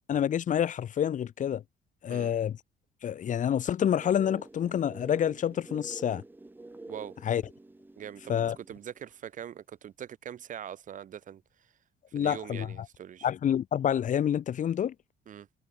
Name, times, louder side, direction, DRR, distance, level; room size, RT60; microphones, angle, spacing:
voice 1, 0.1-1.6 2.0-2.6 3.0-6.2 7.2-7.4 8.3-8.6 12.1-12.7 13.2-14.9, left 9 dB, 50° left, 1.6 m, -28 dB
sound 1, 4.0-9.0, right 2 dB, 10° right, 3.1 m, -48 dB
voice 2, 8.0-11.4 12.1-13.3 15.3-15.5, right 9 dB, 50° right, 2.2 m, -42 dB
cardioid pair, 110°, 17 cm